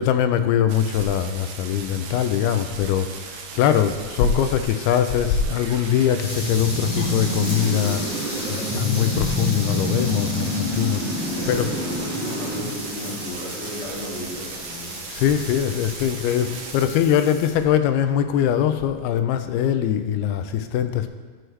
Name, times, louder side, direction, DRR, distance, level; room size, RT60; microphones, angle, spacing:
voice 1, 0.0-8.0 8.5-11.7 15.1-16.5 16.7-21.1, left 9 dB, 90° left, 9 dB, 2.5 m, -22 dB
sound 1, 0.7-16.9, right 5 dB, 75° right, 2.3 m, -38 dB
sound 2, 5.4-13.6, left 1 dB, 15° right, 2.5 m, -28 dB
sound 3, 6.2-17.5, left 1 dB, 40° left, 3.3 m, -36 dB
voice 2, 11.2-15.0 15.2-15.4 16.4-16.6, left 1 dB, 55° left, -7 dB, 3.7 m, -35 dB
12.5 x 6.3 x 3.3 m, 1.4 s
omnidirectional pair, 4.5 m